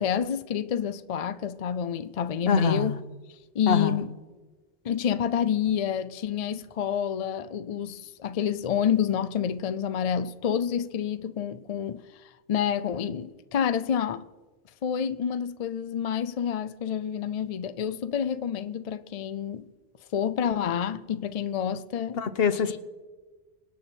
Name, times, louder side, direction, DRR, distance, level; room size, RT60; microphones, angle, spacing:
voice 1, 0.0-2.9 3.5-4.1 4.8-12.0 12.5-14.3 14.8-19.7 20.1-22.2 22.7-22.8, left 8 dB, 50° left, 0.5 m, -28 dB
voice 2, 2.5-3.0 3.7-4.0 22.2-22.8, left 6 dB, 70° left, 1.1 m, -24 dB
24.5 x 9.1 x 4.4 m
omnidirectional pair, 1.0 m